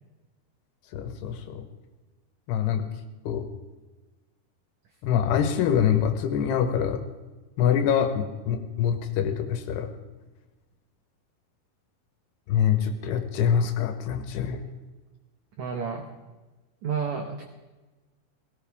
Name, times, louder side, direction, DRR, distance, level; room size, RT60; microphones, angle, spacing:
voice 1, 0.9-1.7 2.5-2.9 3.3-3.5 5.0-7.0 7.6-9.9 12.5-14.6, left 8 dB, 80° left, 7 dB, 3.1 m, -25 dB
voice 2, 15.6-16.1 16.8-17.4, right 6 dB, 80° right, 3 dB, 1.6 m, -30 dB
18.0 x 17.5 x 3.5 m, 1.2 s
omnidirectional pair, 4.7 m